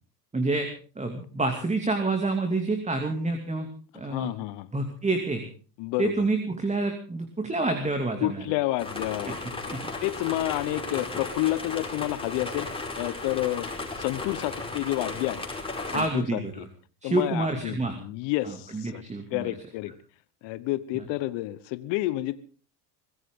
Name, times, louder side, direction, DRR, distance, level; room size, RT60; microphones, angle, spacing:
voice 1, 0.3-0.7 1.0-3.7 3.9-4.3 4.7-5.4 6.0-8.4 9.3-9.8 15.9-16.5 17.0-18.0 18.4-19.5, right 2 dB, 15° right, 6 dB, 2.7 m, -28 dB
voice 2, 4.0-4.7 5.8-6.3 8.2-9.4 10.0-12.7 12.9-13.7 14.0-15.5 15.9-16.7 17.0-19.0 19.3-19.9 20.4-22.4, left 17 dB, 60° left, 16 dB, 1.2 m, -29 dB
sound 1, 8.8-16.1, left 3 dB, 10° left, 5.1 m, -35 dB
23.5 x 16.0 x 3.8 m, 0.38 s
hypercardioid pair, 90°, 48 cm